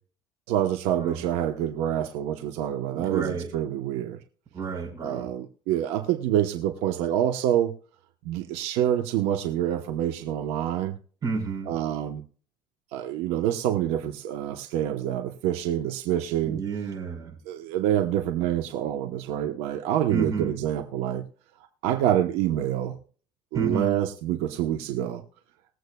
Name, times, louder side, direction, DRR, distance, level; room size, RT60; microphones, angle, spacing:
voice 1, 0.5-4.2 5.0-7.7 8.2-11.0 11.7-12.2 12.9-16.6 17.5-21.2 21.8-22.9 23.5-25.2, right 11 dB, 85° right, 1.0 m, -26 dB
voice 2, 2.9-3.5 4.5-5.3 11.2-11.7 16.4-17.4 20.1-20.5 23.5-23.9, right 4 dB, 40° right, 4.8 m, -30 dB
21.0 x 7.9 x 2.3 m
cardioid pair, 110°, 10 cm